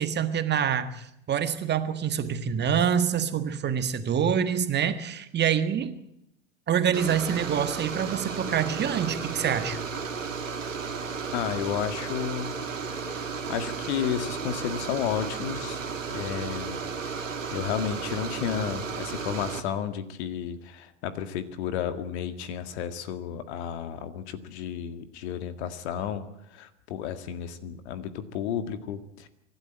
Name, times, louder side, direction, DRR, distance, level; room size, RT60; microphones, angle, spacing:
voice 1, 0.0-6.0 6.7-9.8, right 8 dB, 30° right, 9 dB, 1.7 m, -26 dB
sound 1, 6.9-19.6, right 5 dB, 90° right, 2.1 m, -34 dB
voice 2, 11.3-12.5 13.1-15.8 16.1-16.8 17.1-26.3 26.5-29.3, left 9 dB, 60° left, 10 dB, 2.0 m, -32 dB
25.5 x 12.0 x 8.9 m, 0.80 s
hypercardioid pair, 90°, 37 cm